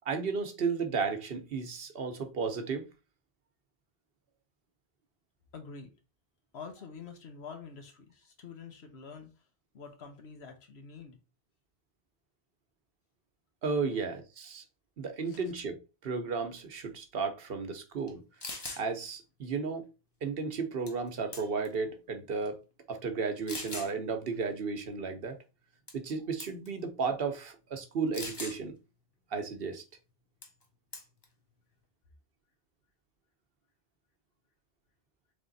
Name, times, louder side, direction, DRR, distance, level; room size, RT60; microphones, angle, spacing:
voice 1, 0.1-2.8 13.6-14.6 15.0-18.2 18.8-19.9 20.2-22.6 22.9-25.4 25.9-28.8 29.3-29.8, right 5 dB, 70° right, 1.0 m, -34 dB
voice 2, 5.5-5.9 6.5-9.3 9.7-11.2 13.9-14.1 15.2-15.5, left 5 dB, 90° left, 1.3 m, -47 dB
sound 1, 18.1-18.2 18.4-18.8 20.9-21.1 21.3-21.7 22.4-22.5 23.5-23.9 25.9-26.1 26.4-26.7 28.1-28.6 30.4-30.6 30.9-31.2, left 2 dB, 25° left, 0.8 m, -40 dB
3.5 x 3.5 x 3.9 m
omnidirectional pair, 1.0 m